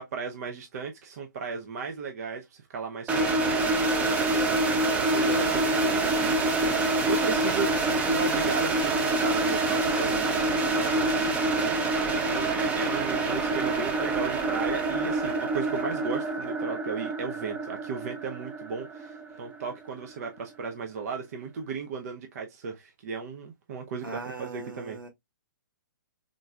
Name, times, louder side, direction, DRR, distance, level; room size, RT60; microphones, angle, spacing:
voice 1, 0.0-25.0, right 5 dB, 50° right, 0.7 m, -36 dB
sound 1, 3.1-19.9, right 2 dB, 10° right, 0.6 m, -26 dB
voice 2, 24.0-25.1, right 3 dB, 85° right, 1.8 m, -39 dB
3.8 x 3.7 x 2.3 m
figure-of-eight pair, 125°, 11 cm